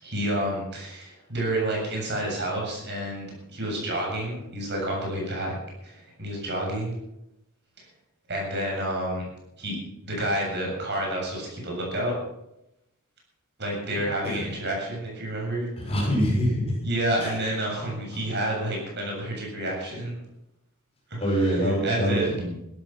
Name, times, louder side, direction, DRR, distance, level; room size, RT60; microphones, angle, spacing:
voice 1, 0.0-5.5 5.8-7.0 7.8-7.9 8.3-9.3 9.6-9.8 10.0-12.1 13.6-15.7 16.8-20.2 21.1-22.4, right 1 dB, 50° right, -1 dB, 7.6 m, -29 dB
voice 2, 15.8-16.8 17.2-17.3 21.2-22.6, equal, 25° left, -2 dB, 6.1 m, -25 dB
16.5 x 13.5 x 6.0 m, 0.85 s
head